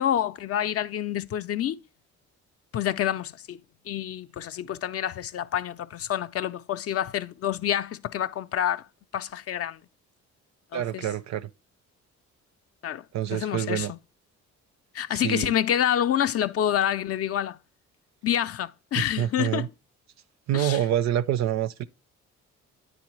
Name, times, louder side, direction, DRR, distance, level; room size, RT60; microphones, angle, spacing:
voice 1, 0.0-1.8 2.7-3.6 3.9-8.8 9.1-9.8 10.7-11.1 12.8-13.0 13.3-14.0 14.9-17.6 18.2-19.7 20.5-20.8, left 10 dB, 50° left, 0.4 m, -27 dB
voice 2, 10.7-11.5 13.1-13.9 15.1-15.5 18.9-19.7 20.5-21.8, right 11 dB, 65° right, 0.5 m, -27 dB
9.6 x 3.9 x 3.0 m
cardioid pair, 85°, 30 cm